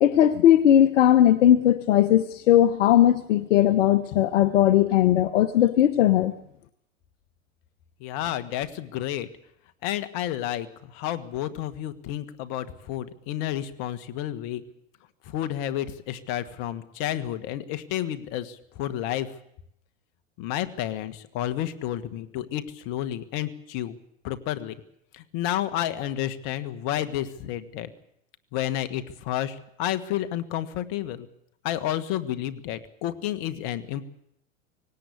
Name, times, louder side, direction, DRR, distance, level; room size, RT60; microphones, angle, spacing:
voice 1, 0.0-6.3, left 11 dB, 70° left, 12 dB, 1.2 m, -18 dB
voice 2, 8.0-9.3 9.8-10.7 10.9-14.6 15.3-19.3 20.4-24.0 24.2-24.7 25.1-27.9 28.5-31.3 31.6-34.1, left 12 dB, 50° left, 12 dB, 1.8 m, -30 dB
19.0 x 18.0 x 8.4 m, 0.73 s
hypercardioid pair, 105°, 38 cm